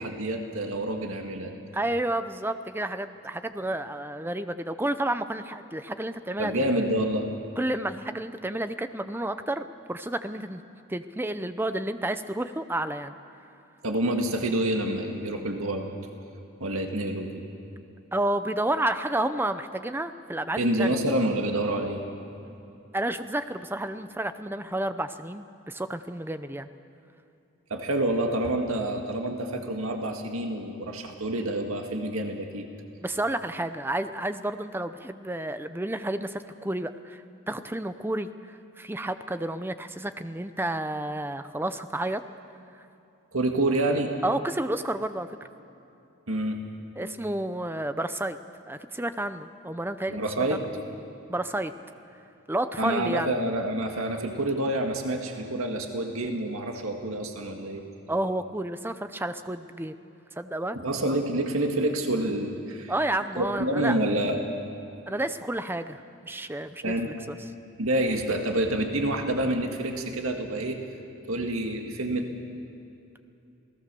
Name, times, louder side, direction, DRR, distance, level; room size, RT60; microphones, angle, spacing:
voice 1, 0.0-1.5 6.4-7.3 13.8-15.9 16.6-17.4 20.6-22.0 27.7-32.7 43.3-44.1 46.3-46.6 50.1-50.7 52.8-57.8 60.7-62.9 63.4-64.4 66.8-67.1 67.8-70.8 71.3-72.3, right 1 dB, 75° right, 3 dB, 1.9 m, -28 dB
voice 2, 1.7-6.6 7.6-10.6 10.9-13.2 18.1-21.0 22.9-26.7 33.0-42.2 44.2-45.3 47.0-48.4 48.7-50.2 50.5-50.7 51.3-51.7 52.5-53.3 58.1-60.0 60.4-60.8 62.9-64.0 65.1-67.4, right 1 dB, 10° right, 10 dB, 0.6 m, -30 dB
28.0 x 17.5 x 6.9 m, 2.8 s
head